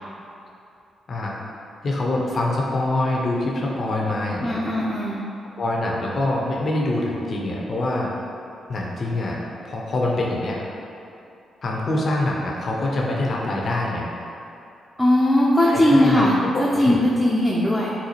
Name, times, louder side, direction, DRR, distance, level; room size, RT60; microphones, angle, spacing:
voice 1, 1.1-1.4 1.8-4.6 5.6-8.1 8.7-9.4 9.6-10.6 11.6-14.1 15.6-16.2 16.5-17.0, left 2 dB, 50° left, -2 dB, 0.6 m, -25 dB
voice 2, 4.4-5.2 15.0-17.9, left 1 dB, ahead, -6 dB, 0.5 m, -19 dB
4.1 x 2.2 x 2.9 m, 2.7 s
hypercardioid pair, 40°, 0 cm